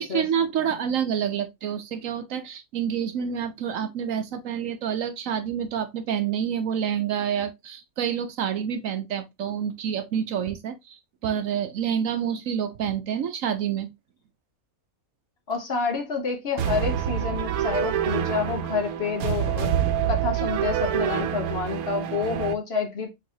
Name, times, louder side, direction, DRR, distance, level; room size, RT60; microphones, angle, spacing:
voice 1, 0.0-13.9, right 8 dB, 70° right, 1.1 m, -28 dB
voice 2, 15.5-19.7 20.1-23.1, left 5 dB, 50° left, 1.2 m, -28 dB
sound 1, 16.6-22.5, right 9 dB, 85° right, 1.2 m, -26 dB
4.8 x 4.0 x 2.7 m
omnidirectional pair, 1.5 m